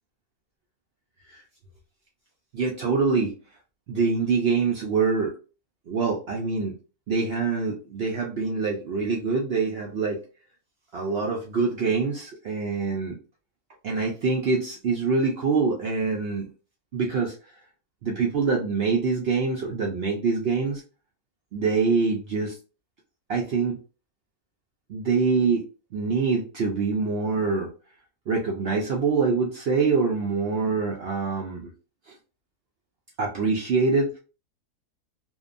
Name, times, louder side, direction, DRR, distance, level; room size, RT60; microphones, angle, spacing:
voice 1, 2.5-3.3 3.9-5.4 5.9-6.7 7.1-10.2 10.9-13.2 13.8-16.5 16.9-17.3 18.0-20.8 21.5-22.6 23.3-23.8 24.9-25.7 25.9-27.7 28.3-31.7 32.1-32.2 33.2-34.2, right 4 dB, 80° right, -1 dB, 0.5 m, -25 dB
2.7 x 2.2 x 2.4 m, 0.34 s
omnidirectional pair, 1.7 m